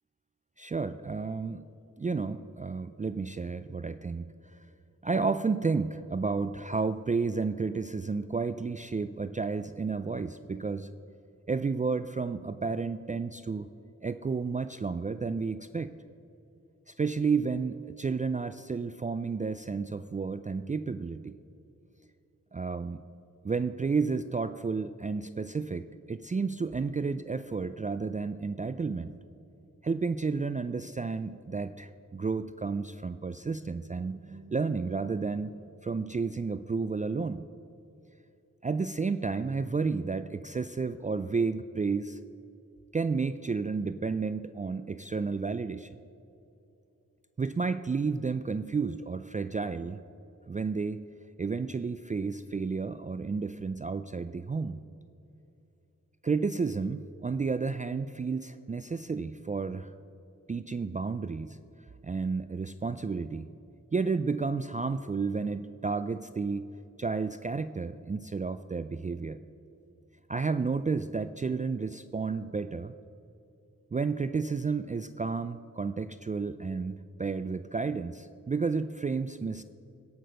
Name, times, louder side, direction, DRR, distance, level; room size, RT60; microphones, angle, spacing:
voice 1, 0.6-1.6 2.0-4.3 5.0-10.9 11.5-13.7 14.0-15.9 16.9-21.4 22.5-23.0 23.4-29.1 29.8-37.4 38.6-42.2 42.9-46.0 47.4-50.0 50.5-51.0 51.4-54.8 56.2-59.9 60.5-61.6 62.0-63.5 63.9-66.7 67.0-69.4 70.3-72.9 73.9-79.6, right 4 dB, 25° right, 12 dB, 0.4 m, -31 dB
17.0 x 6.1 x 6.3 m, 2.8 s
cardioid pair, 50°, 32 cm